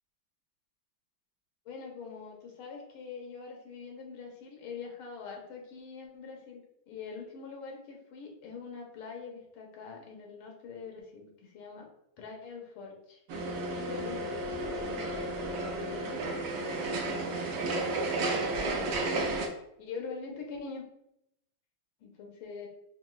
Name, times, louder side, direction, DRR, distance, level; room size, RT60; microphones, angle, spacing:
voice 1, 1.6-11.9 12.2-13.2 13.7-17.4 18.3-19.1 19.8-20.9 22.0-22.7, left 5 dB, 85° left, 0 dB, 1.7 m, -44 dB
sound 1, 13.3-19.5, right 2 dB, 75° right, 1.4 m, -32 dB
5.8 x 2.4 x 2.3 m, 0.80 s
omnidirectional pair, 2.3 m